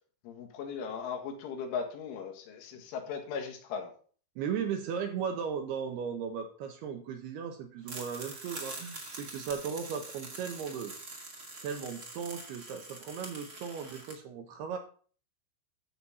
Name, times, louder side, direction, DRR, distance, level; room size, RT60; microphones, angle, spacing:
voice 1, 0.2-3.9, left 6 dB, 85° left, 3 dB, 4.1 m, -38 dB
voice 2, 4.4-10.9 11.6-14.8, right 7 dB, 75° right, 5 dB, 2.6 m, -36 dB
sound 1, 7.8-14.1, right 2 dB, 40° right, 1.3 m, -44 dB
12.5 x 4.2 x 7.1 m, 0.43 s
omnidirectional pair, 5.5 m